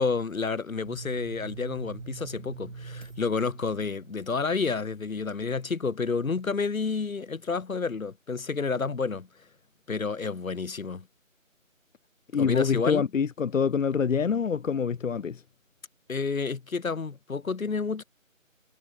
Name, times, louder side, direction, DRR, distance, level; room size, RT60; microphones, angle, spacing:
voice 1, 0.0-9.3 9.9-11.1 12.3-13.0 16.1-18.0, left 4 dB, 85° left, 1.4 m, -30 dB
sound 1, 0.8-5.5, right 4 dB, 60° right, 2.5 m, -44 dB
voice 2, 12.3-15.4, left 6 dB, 70° left, 0.7 m, -25 dB
figure-of-eight pair, 170°, 40 cm